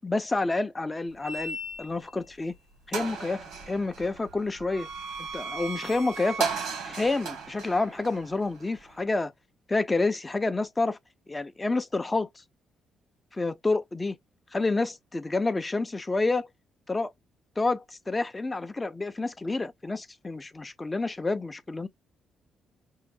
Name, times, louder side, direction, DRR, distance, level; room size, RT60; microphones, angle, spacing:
voice 1, 0.0-2.5 2.9-4.9 5.2-6.5 6.8-9.3 9.7-11.0 11.3-12.3 13.3-14.2 14.5-16.5 16.9-17.1 17.6-21.9, left 3 dB, 20° left, 0.6 m, -29 dB
sound 1, 1.2-2.1 2.5-2.6 2.9-9.0, right 5 dB, 90° right, 1.3 m, -36 dB
5.5 x 2.0 x 2.6 m
cardioid pair, 90°, 0 cm